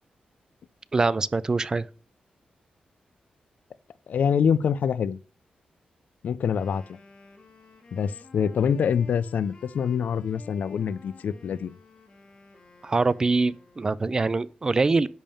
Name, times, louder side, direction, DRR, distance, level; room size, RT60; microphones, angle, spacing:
voice 1, 0.9-1.9 12.8-15.1, right 3 dB, 25° right, 0.3 m, -24 dB
voice 2, 4.1-5.2 6.2-7.0 7.9-11.7, left 7 dB, 65° left, 0.4 m, -25 dB
Wind instrument woodwind instrument, 6.4-14.1, left 3 dB, 40° left, 1.8 m, -51 dB
10.5 x 3.6 x 6.9 m
wide cardioid pair, 175°, 3 cm